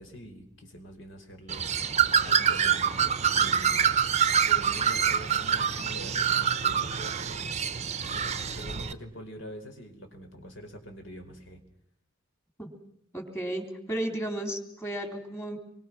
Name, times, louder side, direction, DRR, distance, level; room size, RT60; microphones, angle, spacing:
voice 1, 0.0-2.9 3.3-7.5 8.1-11.6, equal, 65° left, 5 dB, 4.2 m, -45 dB
Bird, 1.5-8.9, right 7 dB, 35° right, 0.8 m, -26 dB
voice 2, 13.1-15.6, right 1 dB, 15° left, 4 dB, 3.7 m, -33 dB
26.5 x 24.0 x 6.1 m, 0.71 s
head